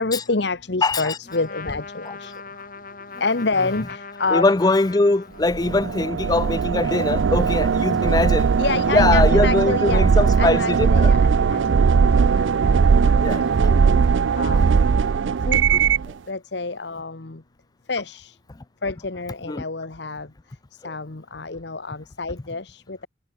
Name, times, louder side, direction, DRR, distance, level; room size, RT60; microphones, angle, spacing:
voice 1, 0.0-2.3 3.2-4.4 8.6-10.0 10.4-13.2 13.7-13.9 14.4-14.8 15.5-15.6 16.3-17.4 17.9-18.3 18.8-20.3 20.8-23.1, left 3 dB, 60° left, 1.1 m, -28 dB
voice 2, 0.8-1.2 2.0-2.2 3.6-3.7 4.3-8.5 8.9-11.1 13.2-13.5 13.7-13.9 15.7-15.8 19.5-19.6 20.8-20.9, left 2 dB, 20° left, 0.4 m, -22 dB
Trumpet, 1.2-5.8, left 4 dB, 45° left, 2.0 m, -39 dB
sound 1, 5.5-16.1, right 5 dB, 75° right, 0.4 m, -19 dB
head